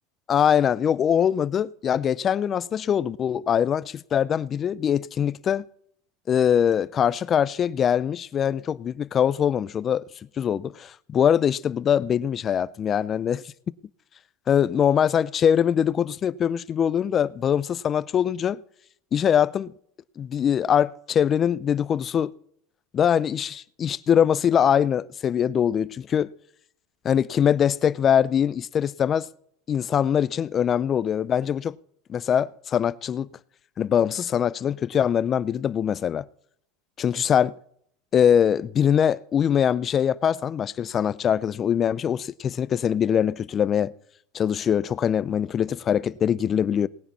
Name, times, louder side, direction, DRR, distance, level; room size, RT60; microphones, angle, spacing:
voice 1, 0.3-5.6 6.3-10.0 10.4-13.4 14.5-18.6 19.1-19.7 20.2-22.3 22.9-26.3 27.0-29.3 29.7-31.8 32.1-33.3 33.8-36.3 37.0-37.5 38.1-43.9 44.3-46.9, left 8 dB, 30° left, 0.4 m, -22 dB
19.0 x 10.0 x 4.2 m
supercardioid pair, 130°, 0 cm